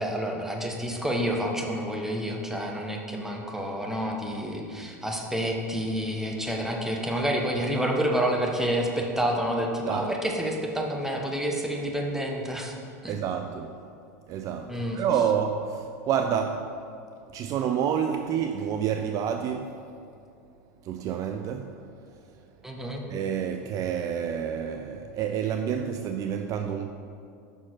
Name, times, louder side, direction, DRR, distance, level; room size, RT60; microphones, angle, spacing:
voice 1, 0.0-12.7 13.0-13.1 14.7-15.0 22.6-23.0, equal, 5° right, 1.1 m, -29 dB
voice 2, 13.1-13.7 14.3-16.7 17.3-19.7 20.8-21.8 23.1-26.9, right 8 dB, 45° right, 0.4 m, -28 dB
6.7 x 6.0 x 4.5 m
hypercardioid pair, 95°, 8 cm